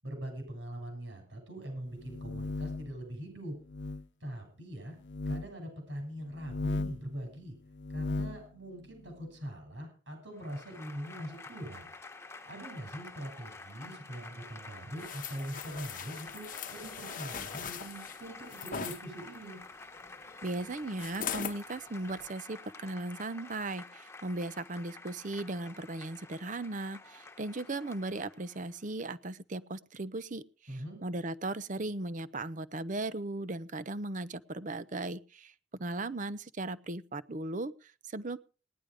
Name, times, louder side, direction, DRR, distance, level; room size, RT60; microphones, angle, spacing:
voice 1, 0.0-3.6 4.2-5.0 5.3-7.5 7.9-11.9 12.4-19.6 30.7-31.0, right 1 dB, 80° right, 3 dB, 7.4 m, -42 dB
sound 1, 2.0-3.0 3.7-4.0 5.0-5.5 6.3-7.1 7.7-8.4, left 3 dB, 70° left, 0.6 m, -36 dB
Applause / Crowd, 10.3-28.9, left 3 dB, 15° left, 1.2 m, -50 dB
sound 2, 15.0-19.0 21.0-21.6 22.1-22.3, left 7 dB, 45° left, 1.0 m, -40 dB
voice 2, 20.4-30.4 30.7-38.4, right 2 dB, 45° right, 16 dB, 0.7 m, -37 dB
18.5 x 10.5 x 5.0 m, 0.36 s
head